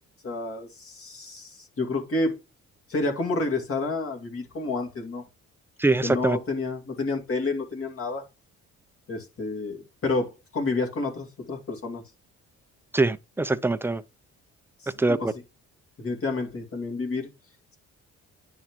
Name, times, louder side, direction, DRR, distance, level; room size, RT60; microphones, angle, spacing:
voice 1, 0.2-2.4 2.9-5.2 6.0-8.2 9.1-12.0 14.8-15.3 16.0-17.3, left 3 dB, 45° left, 2.3 m, -29 dB
voice 2, 5.8-6.4 12.9-14.0 15.0-15.3, right 2 dB, 10° right, 0.4 m, -23 dB
10.0 x 3.7 x 3.0 m
cardioid pair, 90°, 30 cm